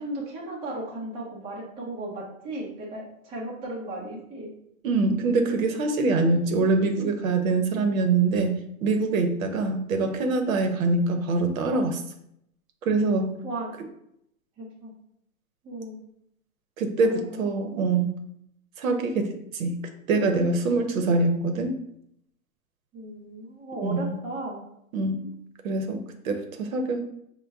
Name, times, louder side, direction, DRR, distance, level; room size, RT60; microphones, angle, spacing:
voice 1, 0.0-4.5 13.4-13.7 14.6-14.9 15.6-16.0 17.0-17.4 22.9-24.6, right 1 dB, 15° right, -4 dB, 0.5 m, -35 dB
voice 2, 4.8-8.5 8.8-12.0 12.8-13.3 16.8-18.1 18.8-19.8 20.1-21.7 23.8-24.2 24.9-25.2 25.6-27.0, right 3 dB, 70° right, 5 dB, 0.8 m, -24 dB
5.2 x 2.2 x 3.4 m, 0.75 s
hypercardioid pair, 150°, 43 cm